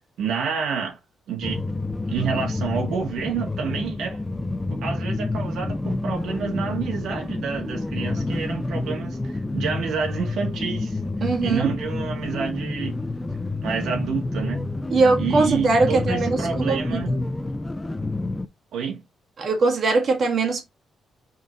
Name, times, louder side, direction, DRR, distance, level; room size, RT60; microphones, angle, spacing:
voice 1, 0.2-1.0 1.3-1.7 2.1-4.2 4.7-11.0 11.4-12.9 13.6-14.6 15.2-17.2 18.7-19.0, right 6 dB, 70° right, 1.6 m, -29 dB
sound 1, 1.4-18.5, left 2 dB, 10° left, 0.4 m, -28 dB
voice 2, 11.2-11.7 14.9-17.2 19.4-20.6, right 3 dB, 40° right, 1.8 m, -21 dB
6.3 x 4.2 x 3.9 m
cardioid pair, 165°, 0 cm